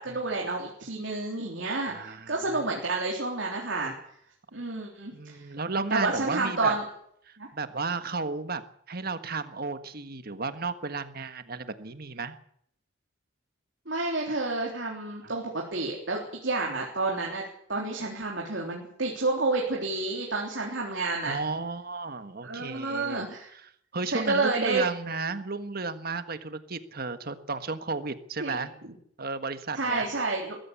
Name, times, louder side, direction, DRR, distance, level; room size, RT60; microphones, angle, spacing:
voice 1, 0.0-3.9 4.5-5.4 5.9-6.8 7.4-7.5 13.9-17.4 17.7-21.3 22.4-23.5 24.1-24.8 28.4-28.7 29.7-30.6, right 3 dB, 70° right, -1 dB, 3.6 m, -30 dB
voice 2, 1.9-2.8 5.1-6.7 7.3-8.6 8.9-12.3 15.2-15.3 21.2-23.2 23.5-28.7 29.2-30.1, right 4 dB, 50° right, 10 dB, 1.5 m, -33 dB
21.5 x 15.0 x 8.4 m, 0.69 s
head